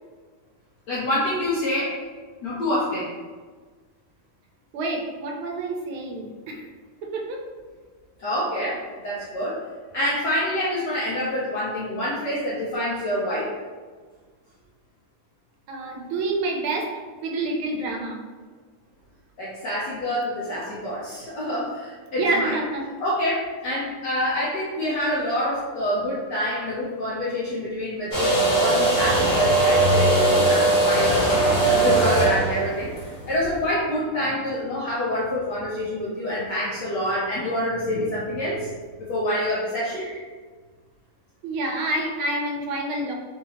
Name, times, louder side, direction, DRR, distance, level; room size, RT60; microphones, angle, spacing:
voice 1, 0.9-1.9 2.4-3.1 8.2-9.6 9.9-13.5 19.4-22.5 23.0-31.3 31.7-32.9 33.3-38.7 39.1-40.1, left 1 dB, 65° left, -8 dB, 1.2 m, -26 dB
voice 2, 4.7-6.7 7.0-7.4 15.7-18.2 22.1-22.9 39.9-40.2 41.4-43.1, right 2 dB, 80° right, 1 dB, 1.4 m, -28 dB
sound 1, 28.1-33.6, right 2 dB, 35° left, 1.3 m, -20 dB
3.8 x 2.7 x 2.8 m, 1.5 s
omnidirectional pair, 2.3 m